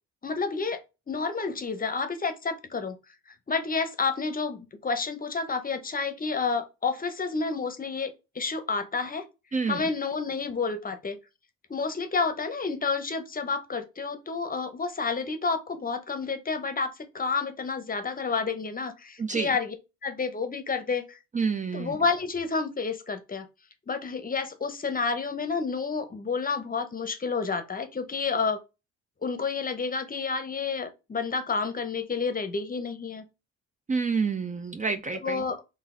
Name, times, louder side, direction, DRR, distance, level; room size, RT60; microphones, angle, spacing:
voice 1, 0.2-0.8 1.1-3.0 3.5-9.2 9.6-11.2 11.7-19.7 20.0-21.2 21.7-23.5 23.9-28.6 29.2-33.2 35.2-35.6, left 4 dB, 30° left, 0.8 m, -30 dB
voice 2, 19.2-19.5 21.3-22.0 33.9-35.4, right 5 dB, 25° right, 0.5 m, -28 dB
3.8 x 2.6 x 3.7 m
cardioid pair, 90°, 30 cm